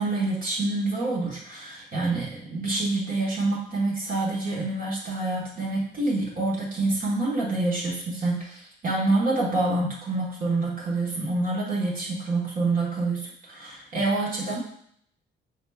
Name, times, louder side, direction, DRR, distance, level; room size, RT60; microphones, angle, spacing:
voice 1, 0.0-14.6, right 2 dB, 45° right, -5 dB, 1.2 m, -27 dB
4.9 x 3.4 x 2.3 m, 0.67 s
cardioid pair, 90°, 20 cm